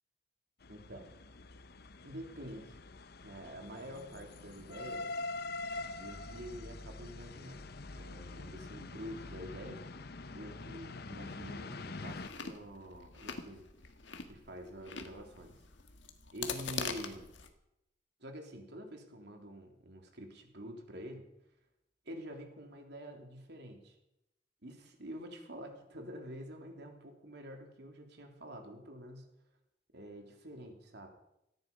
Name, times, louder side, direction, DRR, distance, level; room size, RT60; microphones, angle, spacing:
sound 1, 0.6-12.3, left 3 dB, 60° left, 0.9 m, -45 dB
voice 1, 0.7-1.1 2.0-2.8 3.2-5.1 6.0-9.8 10.3-13.7 14.2-15.6 16.3-17.3 18.2-21.3 22.0-23.9 24.6-29.3 29.9-31.1, equal, 65° right, 3 dB, 3.3 m, -47 dB
Chewing mastication, 12.1-17.5, left 6 dB, 80° left, 1.7 m, -43 dB
17.5 x 14.0 x 5.4 m, 0.84 s
head